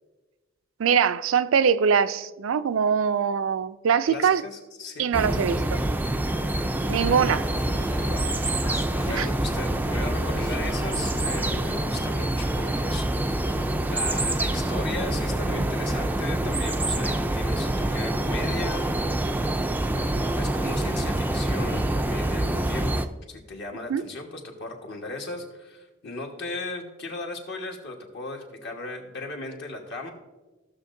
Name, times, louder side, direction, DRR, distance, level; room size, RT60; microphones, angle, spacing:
voice 1, 0.8-4.4 5.0-5.8 6.9-7.5 9.1-9.3 23.9-24.0, right 7 dB, 75° right, 0.4 m, -22 dB
voice 2, 4.1-5.1 7.9-8.3 9.1-18.9 19.9-30.1, left 2 dB, 60° left, 1.4 m, -37 dB
sound 1, 5.1-23.1, right 1 dB, 10° right, 0.3 m, -26 dB
Conversation / Chatter, 6.4-13.1, left 2 dB, 80° left, 1.3 m, -41 dB
15.5 x 6.4 x 2.6 m
head